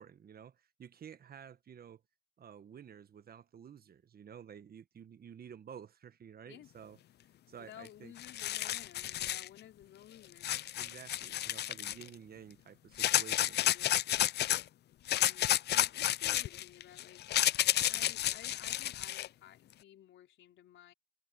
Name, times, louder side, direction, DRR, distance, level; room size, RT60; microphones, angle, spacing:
voice 1, 0.0-2.0 2.4-7.0 7.5-8.1 10.7-13.6, right 8 dB, 50° right, 1.2 m, -52 dB
voice 2, 7.6-10.5 13.6-14.3 15.1-17.2 17.8-20.9, left 11 dB, 75° left, 4.3 m, -55 dB
sound 1, 7.9-8.0 8.2-9.5 10.4-12.1 13.0-14.6 15.1-19.3, left 13 dB, 60° left, 0.4 m, -31 dB
open air
cardioid pair, 90°, 20 cm